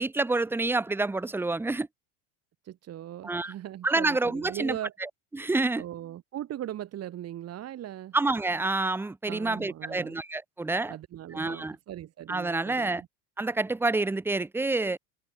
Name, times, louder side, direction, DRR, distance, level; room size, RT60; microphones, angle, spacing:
voice 1, 0.0-1.9 3.2-3.5 3.8-5.1 5.3-5.8 8.1-11.0 11.3-11.8 12.3-13.0 13.4-15.0, right 3 dB, 5° right, 0.8 m, -28 dB
voice 2, 2.6-4.9 5.8-8.2 9.3-10.2 10.9-13.1, right 12 dB, 40° right, 3.7 m, -39 dB
cardioid pair, 155°, 39 cm